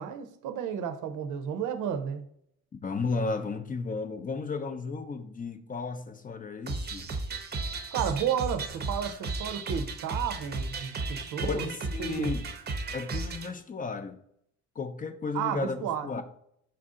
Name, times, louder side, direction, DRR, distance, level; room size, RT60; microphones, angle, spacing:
voice 1, 0.0-2.2 7.9-11.7 12.0-12.3 15.3-16.1, right 8 dB, 80° right, 0.6 m, -32 dB
voice 2, 2.8-7.1 11.4-12.5 12.9-14.2 14.8-16.2, left 4 dB, 30° left, 0.4 m, -34 dB
sound 1, 6.7-13.5, right 3 dB, 35° right, 0.6 m, -34 dB
4.4 x 2.6 x 3.6 m
cardioid pair, 90°, 30 cm